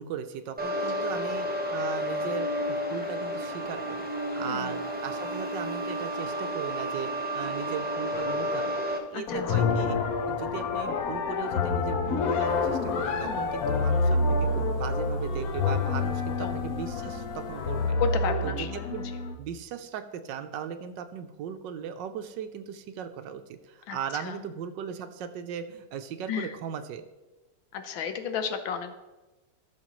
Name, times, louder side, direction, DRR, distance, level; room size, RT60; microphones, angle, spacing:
voice 1, 0.0-4.1 4.4-8.7 9.1-10.0 10.3-18.0 18.4-19.0 19.4-27.0, right 8 dB, 75° right, 9 dB, 1.2 m, -38 dB
sound 1, 0.6-9.0, equal, 10° right, 0.5 m, -31 dB
voice 2, 4.3-4.8 9.1-9.6 13.2-13.5 16.0-16.1 16.4-16.6 18.0-19.2 23.9-24.4 26.3-26.5 27.7-28.9, left 6 dB, 90° left, 8 dB, 1.6 m, -34 dB
sound 2, 8.1-8.9 9.3-19.3, left 3 dB, 60° left, 1.0 m, -28 dB
sound 3, 12.4-17.9, right 1 dB, 40° left, 2.2 m, -45 dB
14.0 x 6.4 x 3.0 m, 1.1 s
omnidirectional pair, 2.1 m